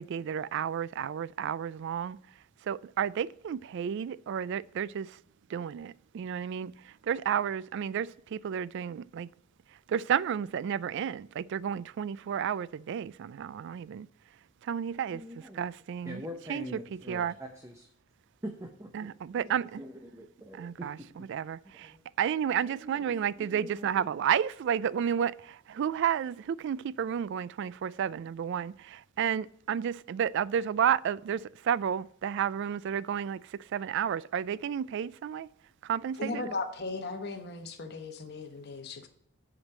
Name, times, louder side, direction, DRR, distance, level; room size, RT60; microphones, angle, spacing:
voice 1, 0.0-2.2 2.6-5.2 5.5-9.3 9.9-14.1 14.6-15.2 15.5-16.2 16.5-16.7 17.1-17.3 18.9-19.8 20.5-35.5 35.8-36.5, right 8 dB, 60° right, 0.3 m, -31 dB
voice 2, 15.1-15.6 16.0-17.9 18.4-18.9 19.4-19.5 19.7-21.3 21.6-22.0 22.6-24.1, equal, 15° right, 0.7 m, -44 dB
voice 3, 36.2-39.1, left 3 dB, 55° left, 1.1 m, -37 dB
7.3 x 5.1 x 7.2 m
head